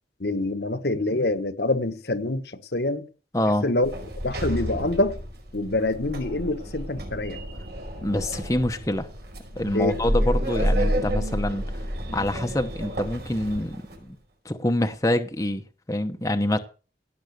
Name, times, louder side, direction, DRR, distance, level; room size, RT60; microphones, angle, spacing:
voice 1, 0.2-3.1 3.6-3.9 4.2-5.2 5.5-7.4 9.7-10.0, left 2 dB, 65° left, 1.3 m, -26 dB
voice 2, 3.3-3.7 8.0-9.1 9.6-11.6 12.1-14.2 14.4-15.6 15.9-16.6, left 1 dB, 20° left, 1.0 m, -26 dB
Sliding door, 3.8-14.0, equal, 65° right, 5.3 m, -30 dB
17.5 x 7.2 x 6.7 m
head